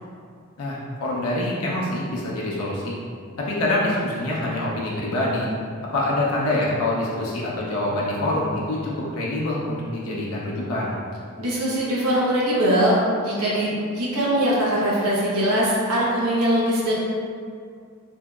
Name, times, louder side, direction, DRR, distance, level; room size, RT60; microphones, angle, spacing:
voice 1, 0.6-2.9 3.4-5.5 5.9-11.0, left 1 dB, 75° left, -5 dB, 0.5 m, -25 dB
voice 2, 11.4-16.9, equal, 85° right, -7 dB, 0.6 m, -21 dB
2.9 x 2.7 x 2.3 m, 2.1 s
head